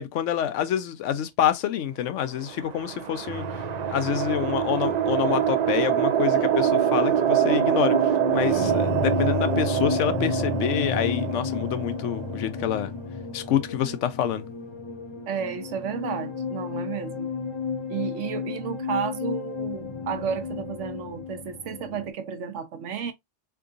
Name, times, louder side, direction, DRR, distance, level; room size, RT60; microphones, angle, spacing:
voice 1, 0.0-3.4 3.9-12.9 13.3-14.4, left 10 dB, 85° left, 0.9 m, -27 dB
sound 1, 2.4-12.8, right 10 dB, 65° right, 0.4 m, -25 dB
sound 2, 3.3-22.1, left 5 dB, 30° left, 0.6 m, -33 dB
voice 2, 15.3-17.3 17.9-23.1, right 7 dB, 85° right, 1.1 m, -32 dB
3.7 x 3.5 x 2.4 m
omnidirectional pair, 1.2 m